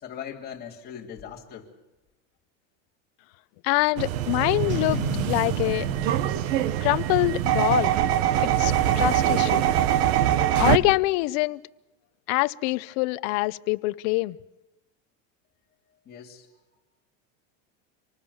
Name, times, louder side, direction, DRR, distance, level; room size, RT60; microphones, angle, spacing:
voice 1, 0.0-1.7 16.0-16.5, left 8 dB, 25° left, -2 dB, 3.3 m, -40 dB
voice 2, 3.6-5.0 5.3-5.9 6.8-7.9 8.6-9.7 10.6-11.6 12.3-14.4, left 22 dB, 55° left, 16 dB, 0.7 m, -24 dB
sound 1, 4.0-10.8, right 12 dB, 75° right, 1.4 m, -23 dB
Boom, 4.7-8.0, left 1 dB, 30° right, 3.8 m, -34 dB
26.0 x 19.0 x 7.1 m, 1.0 s
supercardioid pair, 155°, 38 cm